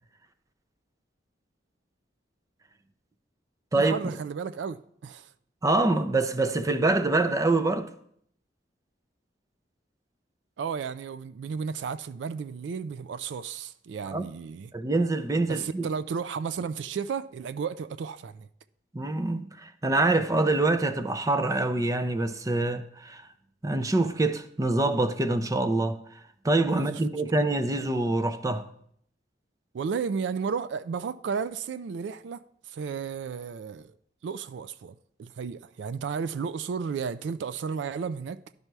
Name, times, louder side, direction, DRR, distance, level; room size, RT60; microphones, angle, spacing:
voice 1, 3.7-5.3 10.6-14.7 15.5-18.5 26.7-27.0 27.3-27.4 29.7-33.9 34.2-38.4, right 6 dB, 75° right, 0.3 m, -33 dB
voice 2, 5.6-7.9 14.1-14.2 14.7-15.9 18.9-23.3 23.6-28.7, right 2 dB, 20° right, 0.5 m, -25 dB
11.0 x 5.5 x 4.6 m
head